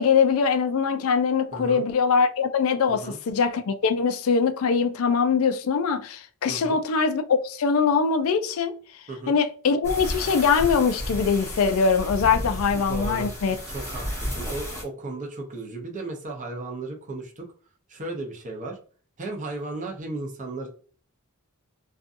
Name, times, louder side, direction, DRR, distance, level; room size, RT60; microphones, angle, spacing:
voice 1, 0.0-8.7 9.3-13.6, left 5 dB, 65° left, 0.4 m, -22 dB
voice 2, 1.5-1.8 2.9-3.2 6.5-6.8 9.1-9.4 12.7-13.3 13.7-17.4 17.9-18.8 19.2-20.7, right 2 dB, 35° right, 0.6 m, -35 dB
sound 1, 9.8-14.8, equal, 15° left, 1.0 m, -32 dB
2.5 x 2.4 x 2.5 m
head